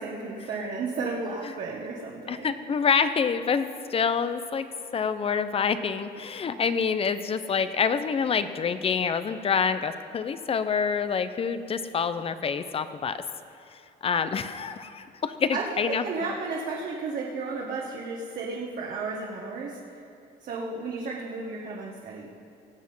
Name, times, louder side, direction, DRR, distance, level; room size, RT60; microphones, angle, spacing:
voice 1, 0.0-2.5 15.5-20.0 20.4-22.3, right 3 dB, 55° right, -2 dB, 1.5 m, -33 dB
voice 2, 2.3-13.2 13.7-16.0, left 6 dB, 35° left, 12 dB, 0.7 m, -27 dB
18.0 x 7.5 x 5.6 m, 2.7 s
cardioid pair, 110°, 17 cm